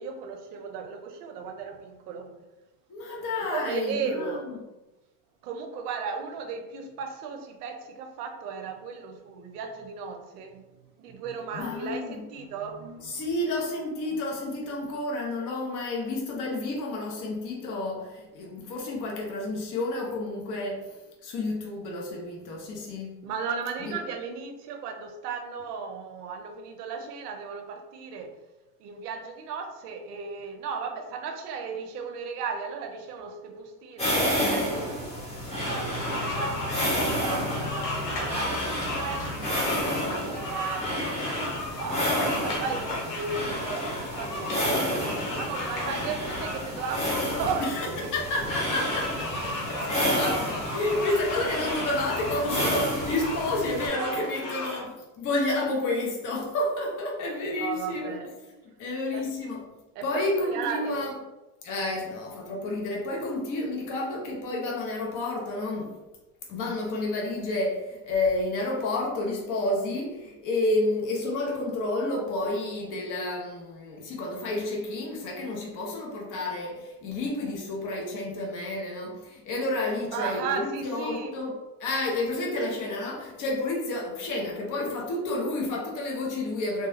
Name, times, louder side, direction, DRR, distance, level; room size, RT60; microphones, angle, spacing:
voice 1, 0.0-2.3 3.4-4.4 5.4-10.6 11.0-13.2 23.2-28.5 28.8-35.0 35.5-39.7 40.0-48.1 53.9-54.7 57.6-58.3 59.1-59.3 60.0-61.0 80.1-81.3, right 5 dB, 80° right, 0.6 m, -35 dB
voice 2, 2.9-4.6 11.5-12.2 13.0-20.9 21.2-23.2 23.9-24.0 47.6-58.2 58.8-59.7 60.0-61.2 61.6-65.9 66.5-81.5 81.8-86.9, left 2 dB, 40° left, 0.9 m, -30 dB
sound 1, 34.0-53.9, equal, 15° left, 1.1 m, -31 dB
sound 2, 35.6-54.8, left 1 dB, 90° left, 1.0 m, -35 dB
sound 3, 37.9-51.0, equal, 10° right, 0.6 m, -43 dB
3.1 x 2.3 x 2.7 m
hypercardioid pair, 85°, 46 cm